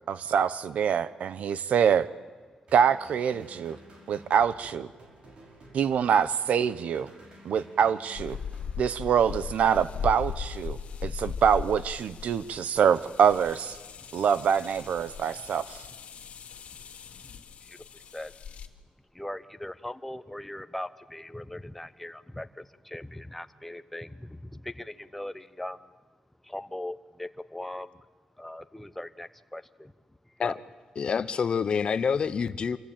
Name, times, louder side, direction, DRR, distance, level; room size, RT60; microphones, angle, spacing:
voice 1, 0.1-2.1 2.7-3.8 4.1-4.9 5.7-7.1 7.4-8.4 8.8-13.8 14.1-15.8, right 7 dB, 85° right, 14 dB, 0.9 m, -25 dB
sound 1, 2.7-11.0, right 1 dB, 50° right, 5.6 m, -53 dB
sound 2, 8.1-18.7, left 7 dB, 75° left, 1.8 m, -39 dB
voice 2, 19.2-22.5 22.9-24.1 25.0-25.8 26.5-27.9 28.4-29.6 30.4-30.5, left 1 dB, 5° left, 10 dB, 0.8 m, -39 dB
voice 3, 30.9-32.8, left 6 dB, 45° left, 13 dB, 0.9 m, -27 dB
27.0 x 24.0 x 9.0 m, 1.5 s
wide cardioid pair, 175°, 2 cm